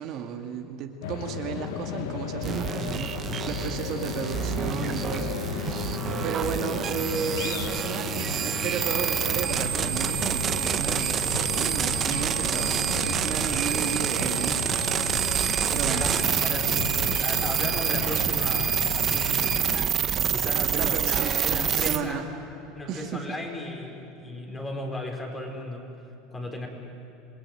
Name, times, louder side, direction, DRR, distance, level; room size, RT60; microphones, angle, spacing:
voice 1, 0.0-6.0 6.2-14.8 15.7-16.0 20.6-22.2 22.9-23.2, right 7 dB, 55° right, 4 dB, 2.2 m, -34 dB
sound 1, 1.0-19.8, left 8 dB, 75° left, 1.2 m, -35 dB
sound 2, 2.4-22.0, right 8 dB, 35° right, 1.3 m, -27 dB
voice 2, 15.7-22.2 22.7-25.9 26.3-26.7, left 1 dB, 15° left, 2 dB, 4.8 m, -36 dB
27.5 x 19.0 x 9.3 m, 2.9 s
supercardioid pair, 115°, 0 cm